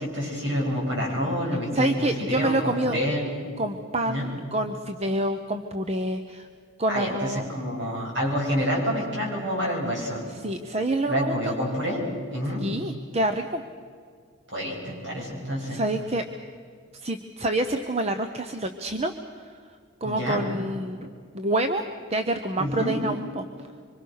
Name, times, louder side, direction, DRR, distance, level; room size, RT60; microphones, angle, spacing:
voice 1, 0.0-3.3 4.1-4.3 6.9-10.3 11.1-12.7 14.5-15.8 20.0-20.4 22.6-23.0, equal, 60° right, -2 dB, 7.9 m, -28 dB
voice 2, 1.7-3.0 3.6-6.5 6.8-7.5 10.3-11.5 12.6-13.6 15.7-16.2 17.0-19.1 19.4-19.6 20.0-21.1 21.3-21.8 22.1-23.4, right 1 dB, 30° right, 8 dB, 0.9 m, -27 dB
25.5 x 25.0 x 6.6 m, 2.1 s
head